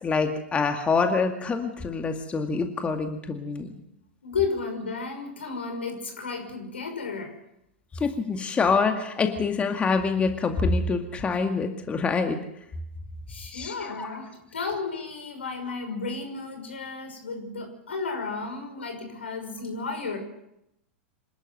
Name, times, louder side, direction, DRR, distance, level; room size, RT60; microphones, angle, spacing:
voice 1, 0.0-3.7 7.9-12.4 13.5-14.1, left 4 dB, 20° left, 5 dB, 2.2 m, -26 dB
voice 2, 4.2-7.4 8.0-8.1 13.3-20.2, left 4 dB, 80° left, 5 dB, 6.0 m, -33 dB
26.5 x 12.5 x 8.0 m, 0.82 s
hypercardioid pair, 100°, 6 cm